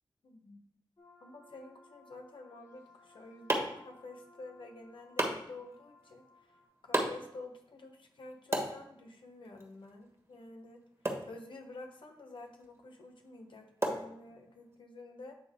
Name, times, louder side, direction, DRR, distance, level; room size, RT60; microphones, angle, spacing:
voice 1, 0.2-0.7 1.2-6.6 6.8-10.8 11.3-15.3, left 2 dB, 75° left, 2 dB, 1.1 m, -50 dB
sound 1, 1.0-6.7, left 2 dB, 40° left, 1.9 m, -61 dB
sound 2, 2.8-14.8, right 1 dB, 30° right, 1.5 m, -40 dB
8.7 x 3.6 x 3.7 m, 0.72 s
cardioid pair, 60°, 9 cm